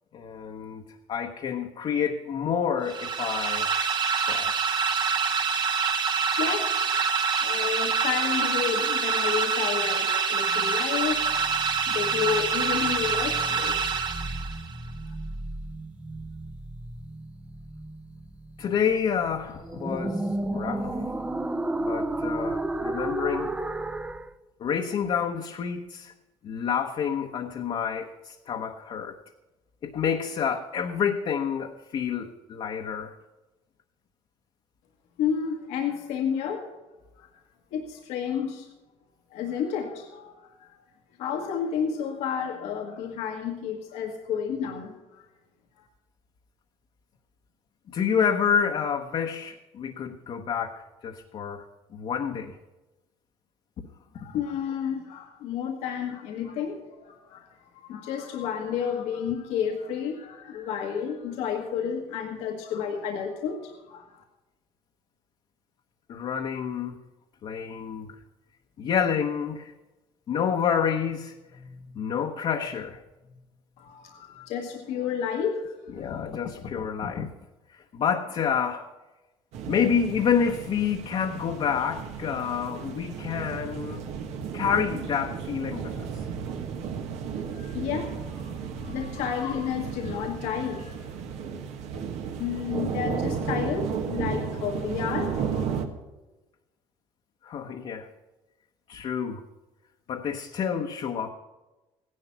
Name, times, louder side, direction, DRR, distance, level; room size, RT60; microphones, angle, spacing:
voice 1, 0.1-3.7 4.1-4.6 18.6-21.1 21.8-23.6 24.6-26.1 26.4-29.2 29.8-33.1 47.9-51.6 51.9-52.6 66.1-66.9 67.4-68.1 68.8-69.7 70.3-71.7 71.9-73.0 75.9-77.3 77.7-78.9 79.7-84.0 84.5-86.1 97.4-98.1 98.9-99.4 100.1-101.3, left 7 dB, 50° left, 2 dB, 1.0 m, -28 dB
sound 1, 2.9-14.7, right 5 dB, 40° right, 1.2 m, -26 dB
voice 2, 6.4-6.7 7.4-11.5 11.9-14.0 15.0-15.1 35.2-36.7 37.2-37.3 37.7-38.7 39.3-40.7 41.2-45.2 54.1-57.5 57.8-64.2 73.8-76.2 87.5-91.1 92.4-95.8, left 7 dB, 80° left, 2 dB, 1.5 m, -31 dB
sound 2, 11.0-24.3, right 1 dB, 10° right, 0.6 m, -34 dB
sound 3, 79.5-95.9, right 6 dB, 75° right, 1.5 m, -34 dB
15.5 x 11.0 x 5.8 m, 1.1 s
cardioid pair, 105°, 11 cm